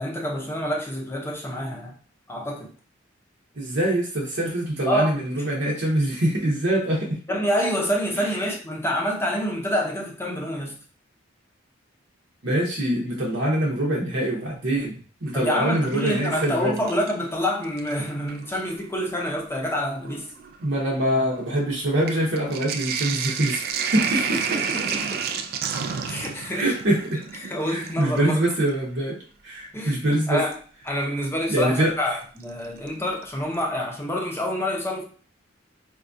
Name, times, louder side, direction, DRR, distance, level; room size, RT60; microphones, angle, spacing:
voice 1, 0.0-1.9 2.3-2.7 4.9-5.1 7.3-10.8 15.3-20.3 24.1-25.4 26.1-26.7 27.4-28.4 29.7-30.0 30.3-30.6 30.9-35.0, equal, 15° left, -1 dB, 0.6 m, -27 dB
voice 2, 3.6-7.2 12.4-16.7 20.6-23.6 23.9-24.6 26.5-27.2 27.7-29.2 29.4-30.4 31.5-31.9, right 1 dB, 70° right, -3 dB, 0.8 m, -24 dB
Sink (filling or washing), 15.3-17.3 17.6-18.5 19.3-19.4 19.6-28.7 30.5-30.6 32.4-32.9 33.2-33.3 33.5-33.6, right 6 dB, 50° right, 0.3 m, -31 dB
4.3 x 2.3 x 2.5 m, 0.42 s
head